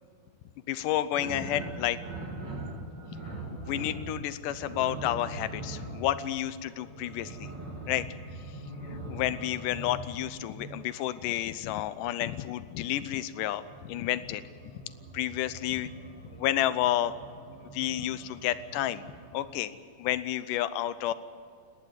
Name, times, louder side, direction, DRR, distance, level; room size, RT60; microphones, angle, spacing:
voice 1, 0.7-2.0 3.1-3.2 3.7-7.5 7.9-8.1 9.1-14.4 14.7-14.8 15.1-15.9 16.3-17.1 17.7-19.0 19.3-19.7 20.0-21.1, left 13 dB, 75° left, 14 dB, 2.0 m, -30 dB
sound 1, 1.1-11.1 12.6-19.5, right 2 dB, 30° right, 2.7 m, -42 dB
29.0 x 11.0 x 9.9 m, 2.3 s
omnidirectional pair, 4.4 m